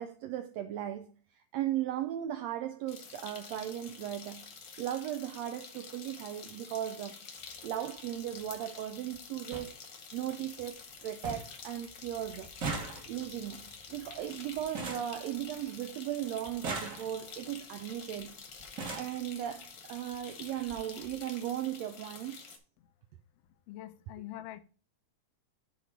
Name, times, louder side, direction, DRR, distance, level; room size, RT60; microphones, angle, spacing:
voice 1, 0.0-4.5 4.8-7.2 7.6-9.8 10.1-12.5 13.1-18.4 18.9-22.6, right 11 dB, 80° right, 1.5 m, -37 dB
sound 1, 2.9-22.6, left 5 dB, 50° left, 1.5 m, -49 dB
sound 2, 7.4-7.6 8.8-8.9 9.1-9.2 9.5-9.7 10.2-10.6 10.9-11.0 11.2-11.6 11.9-15.9 16.4-17.4 18.2-18.3 18.6-19.2 20.1-20.2 20.6-20.8 21.0-21.2, right 3 dB, 40° right, 1.2 m, -40 dB
voice 2, 23.7-24.6, left 13 dB, 80° left, 1.4 m, -44 dB
9.2 x 3.1 x 6.4 m
omnidirectional pair, 3.5 m